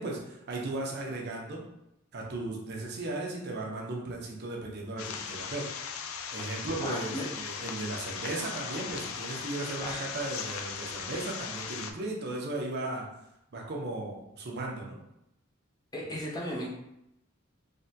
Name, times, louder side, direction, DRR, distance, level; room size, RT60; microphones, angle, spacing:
voice 1, 0.0-1.6 2.1-5.7 6.3-13.0 13.5-15.0, right 2 dB, 55° right, -1 dB, 0.6 m, -36 dB
sound 1, 5.0-11.9, left 7 dB, 80° left, 0.3 m, -38 dB
voice 2, 6.8-7.3 9.8-10.1 15.9-16.7, equal, 20° left, -5 dB, 0.6 m, -35 dB
3.3 x 2.1 x 2.7 m, 0.83 s
head